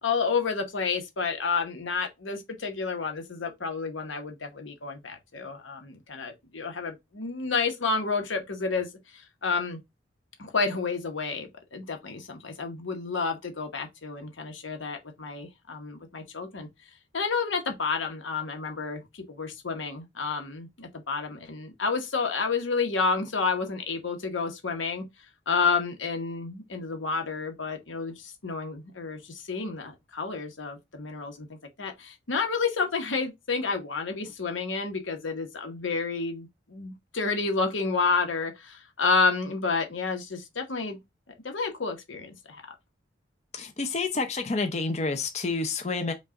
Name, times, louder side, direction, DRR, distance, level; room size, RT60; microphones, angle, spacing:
voice 1, 0.0-9.8 10.4-16.7 17.1-25.1 25.5-41.0 41.4-42.6, left 4 dB, 90° left, 1.0 m, -30 dB
voice 2, 43.5-46.1, left 3 dB, 35° left, 0.5 m, -29 dB
5.3 x 2.4 x 3.6 m
head